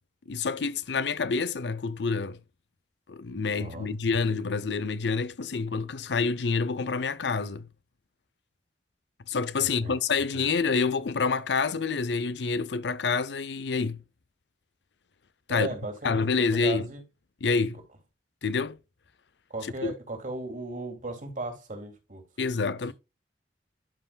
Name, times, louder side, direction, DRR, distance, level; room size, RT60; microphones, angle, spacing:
voice 1, 0.3-2.4 3.1-7.7 9.3-14.0 15.5-15.7 16.0-16.9 17.4-17.8 18.4-18.8 19.8-19.9 22.4-22.9, left 4 dB, 80° left, 0.6 m, -27 dB
voice 2, 3.6-3.9 9.6-10.0 10.3-10.5 15.5-17.0 19.5-22.3 22.9-23.0, right 2 dB, 50° right, 2.7 m, -36 dB
12.0 x 5.6 x 2.3 m
head